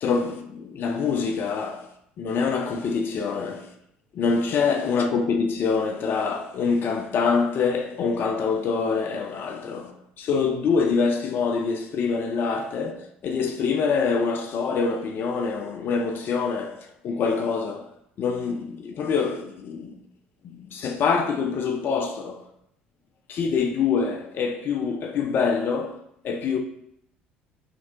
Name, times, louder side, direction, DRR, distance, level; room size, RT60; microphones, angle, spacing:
voice 1, 0.0-1.9 2.2-3.7 4.1-17.9 18.2-20.0 20.4-22.4 23.3-26.6, left 5 dB, 45° left, 0.5 m, -25 dB
5.7 x 3.2 x 2.4 m
figure-of-eight pair, 55°, 5 cm